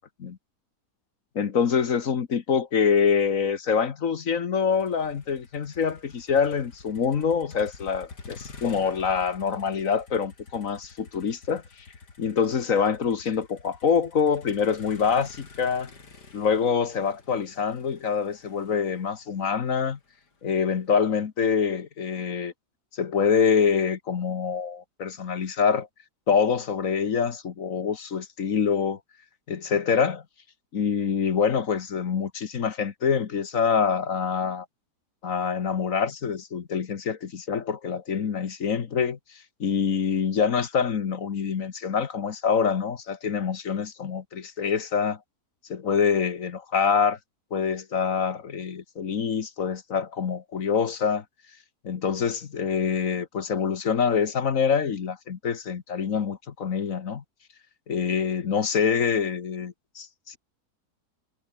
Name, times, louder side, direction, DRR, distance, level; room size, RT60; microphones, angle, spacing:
voice 1, 1.3-11.6 12.2-15.9 16.3-20.0 20.4-22.5 22.9-25.9 26.3-29.0 29.5-30.2 30.7-34.6 35.2-39.2 39.6-45.2 45.7-47.2 47.5-51.2 51.8-57.2 57.9-60.4, left 6 dB, 55° left, 1.6 m, -25 dB
Motor vehicle (road), 4.7-20.9, left 4 dB, 85° left, 3.8 m, -48 dB
omnidirectional pair, 1.7 m